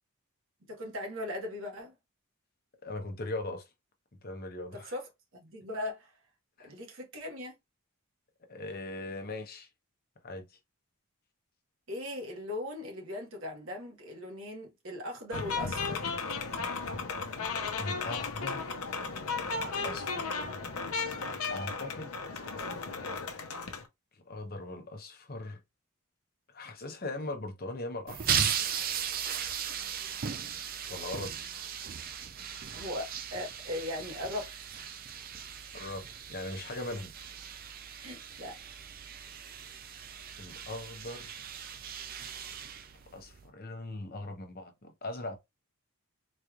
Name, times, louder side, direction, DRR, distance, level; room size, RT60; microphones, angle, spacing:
voice 1, 0.6-1.9 4.7-6.1 6.6-7.6 11.9-16.0 32.7-34.9 38.0-38.6, left 1 dB, 65° right, 1.4 m, -39 dB
voice 2, 2.8-3.6 4.2-4.9 6.6-6.7 8.5-9.7 10.2-10.5 17.7-18.7 19.6-20.3 21.5-22.2 24.1-25.6 26.5-28.6 30.9-31.3 35.7-37.1 40.4-41.3 43.1-45.4, left 2 dB, 45° left, 0.9 m, -40 dB
sound 1, 15.3-23.9, left 4 dB, 80° left, 0.8 m, -35 dB
sound 2, 28.1-43.5, right 8 dB, 40° right, 0.5 m, -37 dB
4.1 x 3.1 x 2.4 m
head